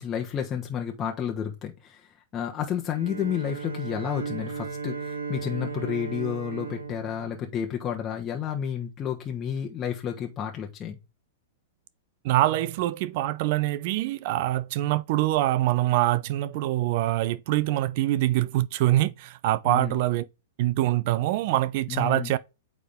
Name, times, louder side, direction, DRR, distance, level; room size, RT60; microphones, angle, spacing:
voice 1, 0.0-2.0 2.3-11.0 19.7-20.0 21.9-22.3, left 8 dB, 25° left, 1.1 m, -31 dB
Bowed string instrument, 2.8-8.1, right 5 dB, 90° right, 1.1 m, -36 dB
voice 2, 12.2-20.3 20.6-22.4, right 15 dB, 55° right, 0.4 m, -24 dB
8.5 x 3.6 x 3.6 m
hypercardioid pair, 115°, 0 cm